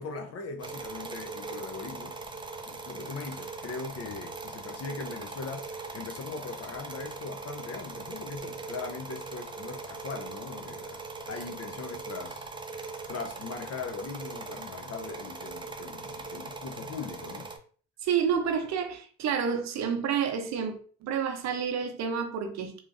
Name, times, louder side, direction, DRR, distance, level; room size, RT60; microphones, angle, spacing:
voice 1, 0.0-2.2 2.7-12.5 13.1-17.5, left 4 dB, 50° left, 0.7 m, -40 dB
sound 1, 0.6-17.6, right 3 dB, 15° right, 0.4 m, -41 dB
voice 2, 18.0-22.8, right 7 dB, 60° right, 0.7 m, -29 dB
3.0 x 2.5 x 2.5 m
supercardioid pair, 65°, 30 cm